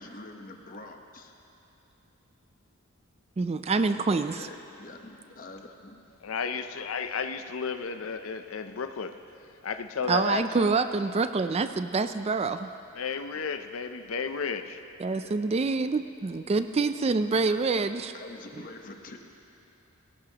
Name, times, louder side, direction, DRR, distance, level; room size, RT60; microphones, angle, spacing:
voice 1, 0.0-1.4 4.1-6.1 15.1-15.3 17.4-17.6 18.1-19.2, left 2 dB, 40° left, 1.1 m, -45 dB
voice 2, 3.4-4.4 10.1-12.7 15.0-18.1, right 4 dB, 30° right, 0.4 m, -26 dB
voice 3, 6.2-10.7 13.0-14.8, left 5 dB, 70° left, 0.6 m, -33 dB
21.0 x 18.0 x 2.9 m
head